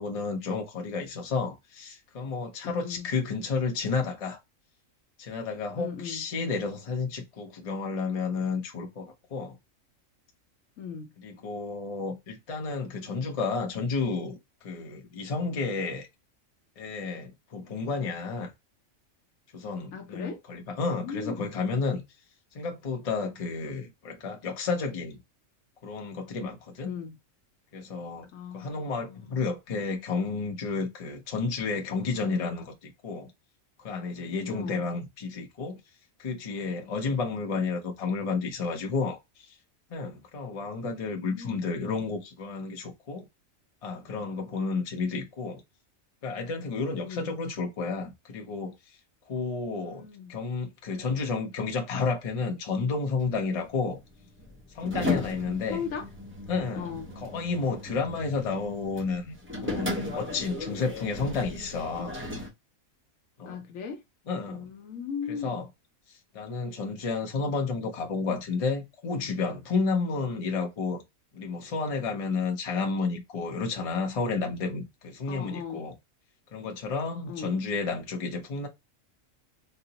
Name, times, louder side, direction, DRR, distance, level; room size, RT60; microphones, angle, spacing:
voice 1, 0.0-4.4 5.2-9.6 11.2-14.4 14.6-16.1 16.8-18.5 19.5-22.0 22.5-25.2 25.8-27.0 27.7-33.3 33.8-35.8 36.2-39.6 39.9-43.3 43.8-45.6 46.2-48.8 49.3-54.0 54.7-55.8 56.5-62.2 63.4-63.6 64.3-64.7 65.3-65.6 66.1-71.0 71.3-76.0 76.5-78.7, left 4 dB, 35° left, 0.6 m, -31 dB
voice 2, 2.6-3.1 5.8-6.2 10.8-11.1 19.9-20.4 20.8-21.5 26.9-27.2 28.3-28.7 29.0-29.4 34.5-34.8 40.8-41.7 47.0-47.3 49.7-50.3 55.7-56.1 56.7-57.1 63.4-64.0 64.5-65.6 75.3-75.9 77.3-77.5, left 6 dB, 80° left, 1.1 m, -38 dB
sound 1, 53.2-62.5, left 3 dB, 15° right, 0.4 m, -36 dB
4.2 x 2.0 x 2.7 m
omnidirectional pair, 1.4 m